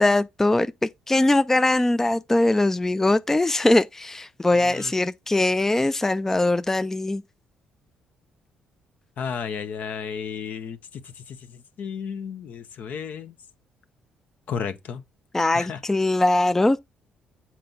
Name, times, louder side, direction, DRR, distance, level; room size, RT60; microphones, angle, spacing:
voice 1, 0.0-7.2 15.3-16.8, left 2 dB, 15° left, 0.4 m, -21 dB
voice 2, 4.5-4.9 9.2-13.3 14.5-15.0 15.5-15.8, left 7 dB, 65° left, 0.8 m, -33 dB
7.5 x 4.3 x 3.8 m
supercardioid pair, 75°, 3 cm